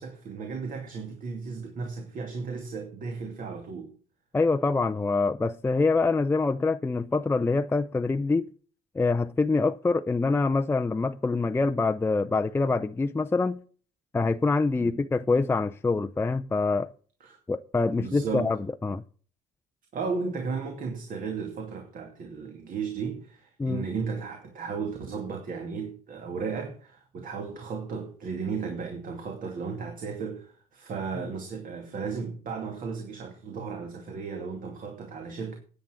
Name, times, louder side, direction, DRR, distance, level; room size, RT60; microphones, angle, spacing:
voice 1, 0.0-3.9 14.8-15.0 17.2-17.4 17.9-18.5 19.9-35.6, right 5 dB, 55° right, 2.5 m, -35 dB
voice 2, 4.3-8.5 9.0-13.6 14.1-16.9 17.5-19.0 23.6-23.9, left 3 dB, 15° left, 0.5 m, -25 dB
10.5 x 8.3 x 6.3 m
cardioid pair, 110°, 17 cm